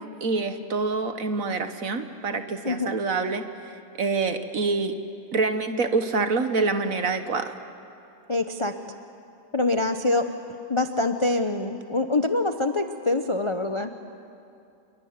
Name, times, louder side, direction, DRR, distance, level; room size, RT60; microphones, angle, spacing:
voice 1, 0.0-3.4 4.0-5.0 5.3-7.5, right 4 dB, 50° right, 8 dB, 1.5 m, -26 dB
voice 2, 2.6-3.0 8.3-8.7 9.5-10.3 10.7-13.9, left 2 dB, 30° left, 7 dB, 0.6 m, -25 dB
27.0 x 22.5 x 9.6 m, 2.5 s
omnidirectional pair, 2.0 m